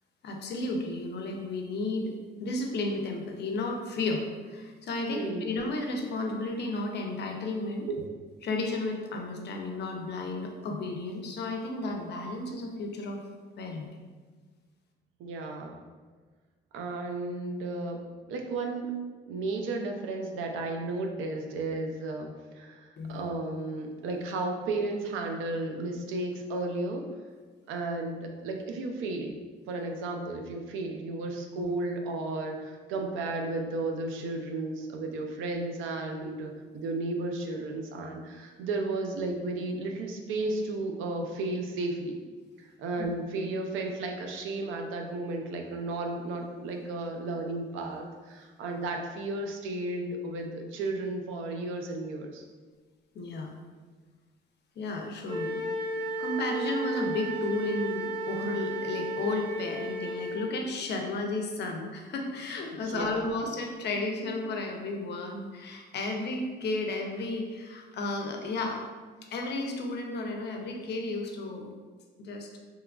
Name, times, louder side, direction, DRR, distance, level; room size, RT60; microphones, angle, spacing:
voice 1, 0.2-2.1 2.4-7.9 8.4-13.2 13.6-13.9 23.0-23.2 31.5-31.8 36.2-36.3 53.1-53.5 54.8-55.7 56.2-68.8 69.3-71.7 72.2-72.6, left 2 dB, 60° left, 2 dB, 0.5 m, -33 dB
voice 2, 5.1-5.5 7.9-8.0 15.2-15.7 16.7-18.9 19.3-27.0 27.7-29.3 29.7-42.2 42.6-52.4 62.7-63.3, right 2 dB, 85° right, 3 dB, 0.4 m, -33 dB
Wind instrument woodwind instrument, 55.3-60.4, right 1 dB, 25° right, 0.6 m, -33 dB
2.9 x 2.2 x 2.3 m, 1.4 s
cardioid pair, 90°, 20 cm